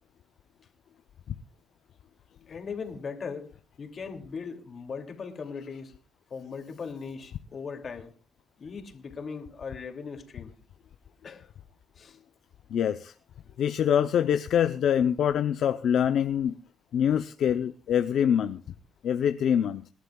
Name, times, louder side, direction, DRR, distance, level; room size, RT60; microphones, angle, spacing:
voice 1, 2.5-5.9 6.3-8.1 8.6-10.5 11.2-11.5 12.0-12.2, left 5 dB, 45° left, 2.6 m, -39 dB
voice 2, 12.7-13.1 13.6-16.6 16.9-18.6 19.0-19.9, left 9 dB, 70° left, 0.6 m, -25 dB
27.0 x 11.5 x 2.3 m
cardioid pair, 90°, 0 cm